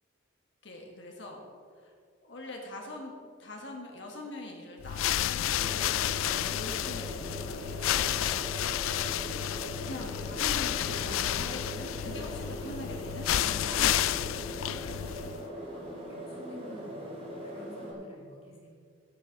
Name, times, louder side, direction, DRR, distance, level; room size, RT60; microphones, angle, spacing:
voice 1, 0.6-1.4 1.8-1.9 2.2-3.1 3.4-5.8 6.5-14.4, left 1 dB, 60° left, 0 dB, 1.7 m, -43 dB
sound 1, 4.8-15.5, left 11 dB, 80° left, 0.3 m, -31 dB
sound 2, 5.5-17.9, equal, 30° right, 3.6 m, -41 dB
voice 2, 15.7-17.2 17.4-18.7, equal, 30° left, -3 dB, 2.8 m, -50 dB
15.5 x 6.6 x 6.0 m, 2.2 s
head